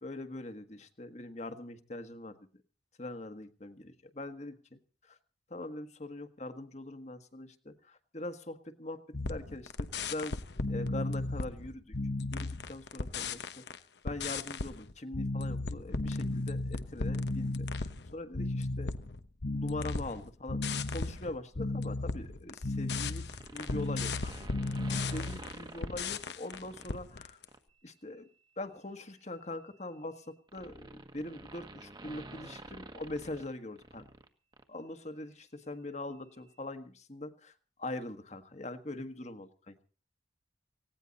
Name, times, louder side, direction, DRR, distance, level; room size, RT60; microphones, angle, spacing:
voice 1, 0.0-2.4 3.0-5.2 5.5-9.0 9.3-10.4 10.7-11.9 12.3-13.6 14.0-18.9 19.5-23.2 23.5-24.3 24.7-27.4 27.8-28.3 28.6-34.1 34.7-39.8, left 2 dB, 40° left, 8 dB, 1.5 m, -42 dB
sound 1, 9.1-13.8 14.1-27.4, left 3 dB, 70° left, 1.0 m, -35 dB
sound 2, 23.3-27.0 27.5-27.7 28.9-34.3 34.5-34.6, right 2 dB, 25° right, 1.4 m, -49 dB
18.5 x 17.5 x 4.1 m, 0.37 s
head